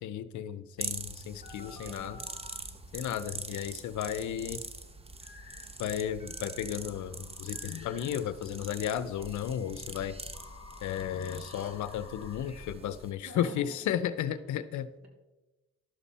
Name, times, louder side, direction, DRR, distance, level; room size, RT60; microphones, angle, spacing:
voice 1, 0.0-2.2 2.9-4.6 5.8-10.2 10.8-14.9, left 10 dB, 70° left, 14 dB, 0.7 m, -34 dB
sound 1, 0.8-13.1, right 2 dB, 20° right, 1.0 m, -43 dB
sound 2, 1.4-2.6 5.2-5.7 6.2-8.3 9.2-12.7, left 5 dB, 25° left, 2.9 m, -52 dB
voice 2, 1.5-2.3 13.2-13.9 14.3-14.7 15.0-15.1, right 2 dB, 55° right, 1 dB, 2.9 m, -50 dB
12.0 x 7.2 x 4.2 m, 1.1 s
cardioid pair, 90°, 30 cm